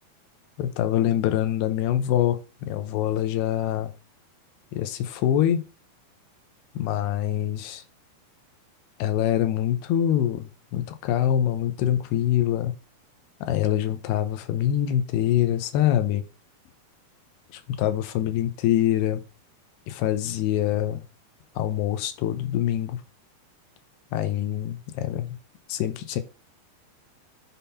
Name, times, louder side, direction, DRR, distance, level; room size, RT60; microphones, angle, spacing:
voice 1, 0.6-3.9 4.7-5.7 6.8-7.8 9.0-12.7 13.4-16.2 17.5-19.2 19.9-21.0 21.6-23.0 24.1-25.4 25.7-26.2, left 11 dB, 80° left, 2.7 m, -25 dB
10.0 x 3.7 x 5.6 m
omnidirectional pair, 4.8 m